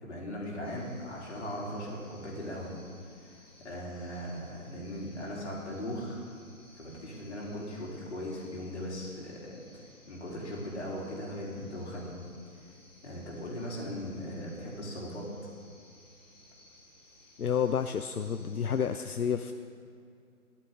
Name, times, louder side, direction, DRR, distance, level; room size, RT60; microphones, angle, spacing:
voice 1, 0.0-2.7 3.2-6.2 6.7-12.2 13.0-15.3, equal, 50° left, -3 dB, 3.2 m, -39 dB
sound 1, 0.6-18.9, left 1 dB, 5° left, 0.7 m, -59 dB
voice 2, 17.4-19.5, left 7 dB, 85° left, 9 dB, 0.6 m, -30 dB
16.5 x 11.0 x 3.7 m, 2.4 s
figure-of-eight pair, 145°, 44 cm